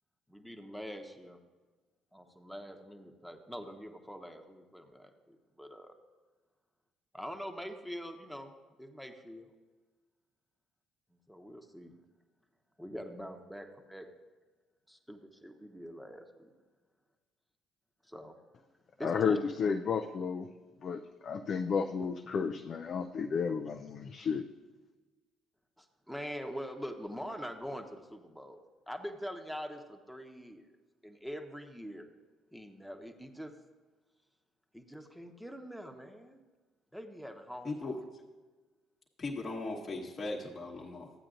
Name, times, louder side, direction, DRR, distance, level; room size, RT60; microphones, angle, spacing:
voice 1, 0.3-1.4 2.1-6.0 7.1-8.5 8.8-9.5 11.3-11.9 12.8-14.1 14.9-16.5 18.0-18.4 19.0-19.4 25.8-30.7 31.0-32.1 32.5-33.6 34.7-36.4 36.9-38.0, equal, ahead, 5 dB, 1.1 m, -44 dB
voice 2, 19.0-20.5 20.8-24.5, left 6 dB, 50° left, 3 dB, 0.5 m, -32 dB
voice 3, 37.6-38.0 39.2-41.1, left 2 dB, 35° left, -3 dB, 1.2 m, -38 dB
13.5 x 8.7 x 2.5 m, 1.3 s
hypercardioid pair, 55°, 0 cm